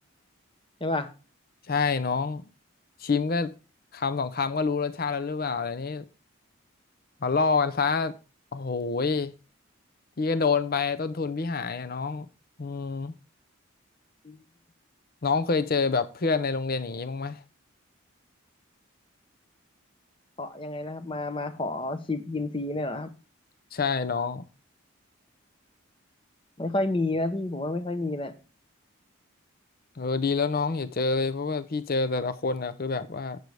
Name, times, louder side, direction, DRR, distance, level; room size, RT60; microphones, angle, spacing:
voice 1, 1.7-2.4 3.0-3.5 3.9-6.0 7.2-8.1 8.5-9.3 10.2-12.3 12.6-13.1 15.2-17.4 23.7-24.4 30.0-33.4, left 4 dB, 45° left, 0.6 m, -27 dB
voice 2, 20.4-23.1 26.6-28.3, left 2 dB, 25° left, 0.9 m, -30 dB
10.0 x 8.3 x 3.4 m
head